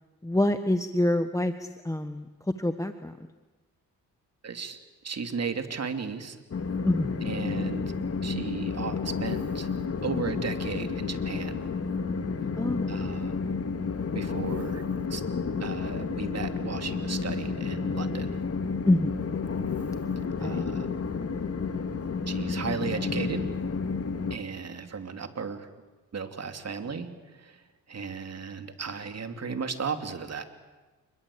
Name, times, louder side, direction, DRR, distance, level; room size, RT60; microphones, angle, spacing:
voice 1, 0.2-2.3 2.6-3.2 6.9-7.1 12.6-13.1 18.9-19.2 20.4-20.7, left 1 dB, 10° left, 9 dB, 1.3 m, -26 dB
voice 2, 4.4-4.8 5.0-6.4 7.2-8.0 8.2-9.7 10.0-11.7 12.9-13.5 14.1-14.8 15.1-15.2 15.6-18.4 20.4-20.9 22.3-23.5 24.3-25.7 26.1-27.6 27.9-30.4, right 5 dB, 45° right, 7 dB, 3.0 m, -35 dB
Train, 6.5-24.4, left 5 dB, 45° left, 2.3 m, -31 dB
28.5 x 21.5 x 8.7 m, 1.2 s
cardioid pair, 70°, 35 cm